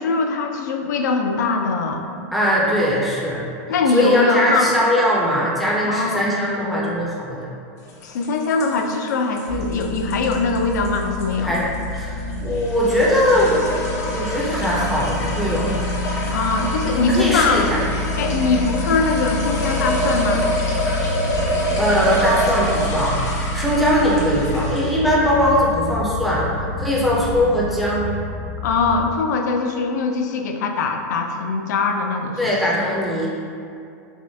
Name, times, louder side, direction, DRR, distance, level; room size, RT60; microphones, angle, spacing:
voice 1, 0.0-2.1 3.7-4.7 5.8-6.2 8.0-11.6 16.3-17.7 18.2-20.5 28.6-32.5, left 4 dB, 85° left, 4 dB, 0.4 m, -22 dB
voice 2, 2.3-3.5 3.9-7.5 11.4-13.6 14.1-15.9 16.9-17.8 21.8-23.2 23.5-26.5 26.8-28.1 32.4-33.3, equal, ahead, -6 dB, 0.4 m, -20 dB
sound 1, 7.9-25.1, equal, 60° left, 0.8 m, -27 dB
sound 2, 9.5-29.1, left 1 dB, 65° right, 0.8 m, -28 dB
3.5 x 3.2 x 2.6 m, 2.4 s
supercardioid pair, 175°, 9 cm